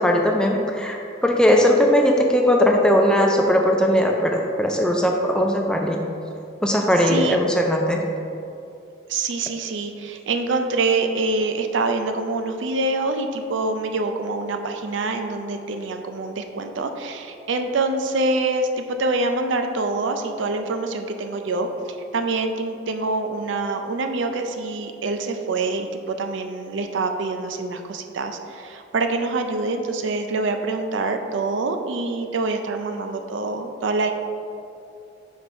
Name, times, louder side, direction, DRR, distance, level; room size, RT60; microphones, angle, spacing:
voice 1, 0.0-6.1 6.6-8.0, equal, 5° left, 1 dB, 0.3 m, -19 dB
voice 2, 7.0-7.4 9.1-21.7 22.1-34.1, right 3 dB, 75° right, 6 dB, 0.4 m, -25 dB
5.0 x 4.1 x 4.6 m, 2.6 s
head